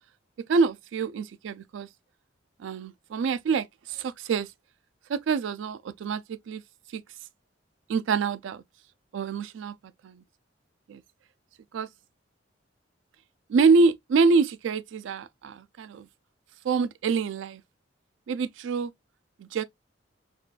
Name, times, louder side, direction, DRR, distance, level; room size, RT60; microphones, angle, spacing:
voice 1, 0.5-1.9 2.6-4.5 5.1-6.6 6.9-7.0 7.9-8.6 9.1-9.7 10.0-10.2 10.9-11.0 11.7-11.9 13.5-16.1 16.6-17.6 18.3-18.9 19.4-19.6, right 4 dB, 75° right, 0.3 m, -26 dB
3.6 x 2.4 x 2.3 m
head